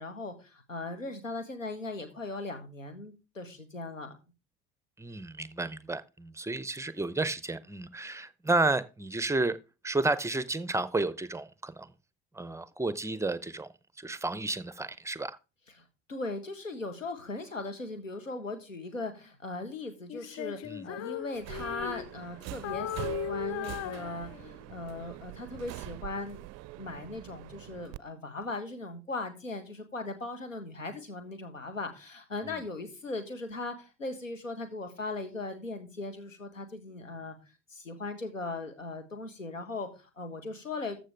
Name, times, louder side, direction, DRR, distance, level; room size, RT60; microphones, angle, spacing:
voice 1, 0.0-4.2 15.8-26.4 26.8-37.4 37.7-41.0, left 3 dB, 90° left, 1.4 m, -39 dB
voice 2, 5.0-9.6 9.8-11.9 12.3-13.7 14.0-15.4 20.6-20.9 32.5-32.6, right 2 dB, 10° right, 0.7 m, -31 dB
Female singing, 20.1-22.3 22.6-24.7, left 13 dB, 45° left, 0.5 m, -37 dB
Subway metro underground, 21.4-28.0, right 18 dB, 45° right, 0.5 m, -43 dB
14.0 x 6.0 x 3.4 m
figure-of-eight pair, 55°, 38 cm